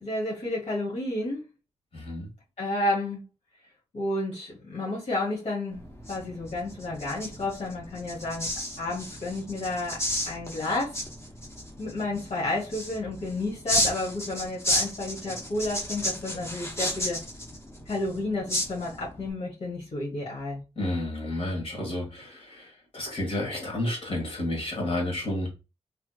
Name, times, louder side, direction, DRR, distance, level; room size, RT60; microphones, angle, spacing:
voice 1, 0.0-1.4 2.6-3.3 3.9-5.8 6.1-8.5 8.8-11.0 11.8-17.2 17.9-20.6, left 2 dB, 75° left, 1.4 m, -31 dB
voice 2, 1.9-2.3 20.8-25.5, left 1 dB, 55° left, 1.8 m, -31 dB
sound 1, 5.7-19.3, left 1 dB, 25° left, 0.9 m, -33 dB
3.3 x 3.0 x 2.3 m
cardioid pair, 60°, 12 cm